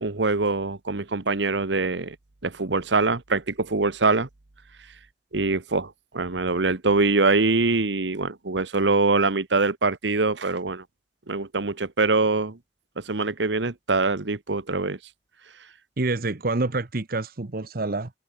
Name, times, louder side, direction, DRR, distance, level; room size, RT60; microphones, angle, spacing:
voice 1, 0.0-2.1 2.4-4.3 5.3-10.8 11.3-12.6 13.0-15.0, right 3 dB, 80° right, 1.3 m, -24 dB
voice 2, 16.0-18.1, right 2 dB, 55° right, 1.0 m, -27 dB
head